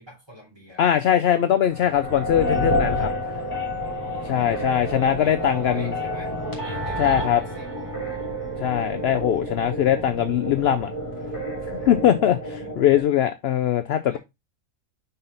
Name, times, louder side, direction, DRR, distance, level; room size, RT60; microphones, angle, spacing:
voice 1, 0.0-1.0 3.7-4.4 4.9-6.4 6.6-7.0 7.6-7.7 12.6-12.8 14.1-14.2, equal, 20° right, 3.5 m, -43 dB
voice 2, 0.8-3.1 4.3-5.9 7.0-7.4 8.6-10.9 11.7-14.2, left 10 dB, 60° left, 0.7 m, -21 dB
sound 1, 1.7-13.0, equal, 35° left, 2.9 m, -29 dB
5.7 x 5.5 x 3.9 m
omnidirectional pair, 1.4 m